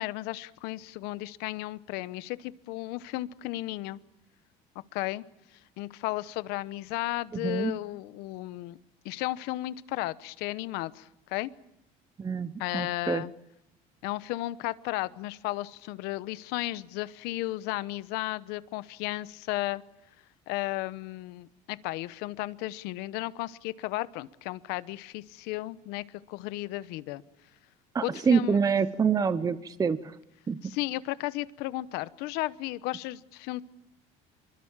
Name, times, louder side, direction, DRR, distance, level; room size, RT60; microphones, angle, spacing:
voice 1, 0.0-4.0 4.9-5.2 5.8-8.8 9.0-11.5 12.6-13.3 14.0-19.8 20.5-27.2 28.0-28.6 30.6-33.6, left 18 dB, 80° left, 16 dB, 1.0 m, -34 dB
voice 2, 7.4-7.7 12.2-13.2 27.9-30.1 30.5-30.6, right 6 dB, 20° right, 13 dB, 0.9 m, -26 dB
25.5 x 22.5 x 7.4 m, 0.80 s
cardioid pair, 120°, 16 cm